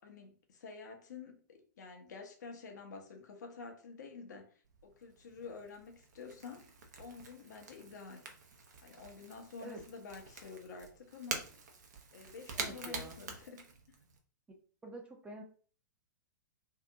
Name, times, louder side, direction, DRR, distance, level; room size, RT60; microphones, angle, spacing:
voice 1, 0.0-6.7 7.0-8.3 8.8-11.5 12.1-13.7, left 5 dB, 65° left, 0.7 m, -49 dB
Crackle / Crack, 4.6-14.2, right 4 dB, 60° right, 0.7 m, -47 dB
voice 2, 12.5-13.2 14.8-15.4, right 1 dB, 10° right, 0.6 m, -47 dB
2.7 x 2.5 x 2.4 m
figure-of-eight pair, 105°, 10 cm